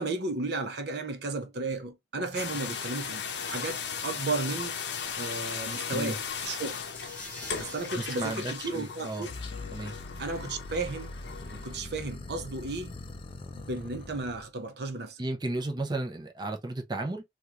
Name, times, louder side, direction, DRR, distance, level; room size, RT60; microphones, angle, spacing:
voice 1, 0.0-4.8 5.2-6.8 7.6-9.3 10.2-11.2 11.5-12.9 13.5-15.2, right 3 dB, 65° right, 0.7 m, -34 dB
sound 1, 2.3-11.8, left 6 dB, 70° left, 0.6 m, -37 dB
sound 2, 5.8-9.7, left 2 dB, 10° left, 1.6 m, -48 dB
voice 2, 8.0-9.3 9.7-9.9 15.2-17.2, right 2 dB, 25° right, 0.6 m, -33 dB
sound 3, 9.3-14.5, left 2 dB, 30° left, 0.4 m, -42 dB
3.5 x 2.4 x 2.8 m
head